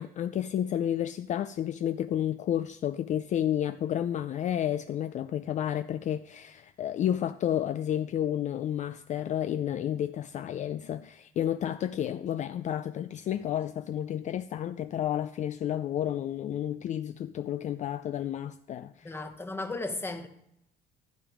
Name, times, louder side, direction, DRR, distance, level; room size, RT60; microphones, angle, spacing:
voice 1, 0.0-19.1, left 10 dB, 45° left, 0.4 m, -31 dB
voice 2, 19.0-20.3, left 2 dB, 15° left, 1.1 m, -35 dB
12.0 x 7.0 x 4.9 m
cardioid pair, 110°, 17 cm